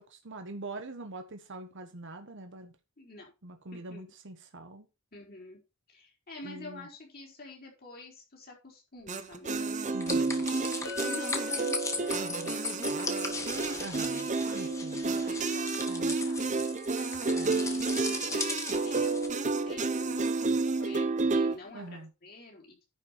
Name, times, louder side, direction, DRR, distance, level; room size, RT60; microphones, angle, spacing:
voice 1, 0.0-2.8 3.4-4.9 6.4-6.9 9.9-10.4 12.2-12.5 13.8-15.0 15.9-16.2 17.3-17.6 21.7-22.1, right 2 dB, 60° right, 1.3 m, -44 dB
voice 2, 3.0-3.3 3.7-4.1 5.1-5.6 5.9-10.0 10.3-22.8, left 2 dB, 45° left, 4.3 m, -48 dB
sound 1, 9.1-21.6, right 3 dB, 35° right, 0.9 m, -30 dB
sound 2, 10.0-19.3, left 3 dB, 15° left, 1.8 m, -38 dB
Chink clink, 10.8-15.1, left 3 dB, 85° left, 3.9 m, -44 dB
10.5 x 5.1 x 5.9 m
head